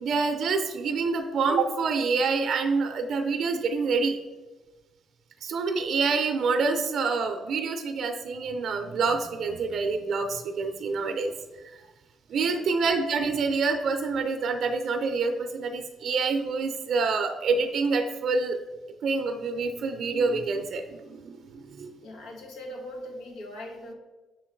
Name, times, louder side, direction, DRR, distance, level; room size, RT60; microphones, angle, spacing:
voice 1, 0.0-4.2 5.4-11.3 12.3-18.6 19.0-21.9, right 4 dB, 65° right, 6 dB, 0.6 m, -27 dB
voice 2, 22.0-23.9, left 1 dB, 90° left, 0 dB, 1.3 m, -40 dB
5.6 x 4.5 x 4.5 m, 1.2 s
cardioid pair, 90°, 0 cm